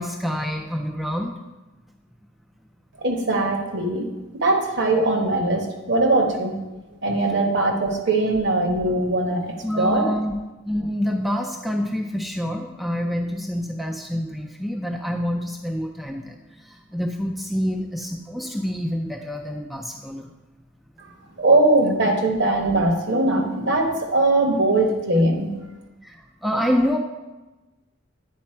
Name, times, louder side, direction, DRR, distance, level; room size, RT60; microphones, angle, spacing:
voice 1, 0.0-1.3 9.6-10.3 10.6-20.3 26.0-27.0, equal, ahead, 2 dB, 0.4 m, -27 dB
voice 2, 3.0-4.1 4.3-6.5 7.0-10.0 21.4-25.5, right 2 dB, 55° right, 3 dB, 1.1 m, -21 dB
9.4 x 4.3 x 4.4 m, 1.1 s
head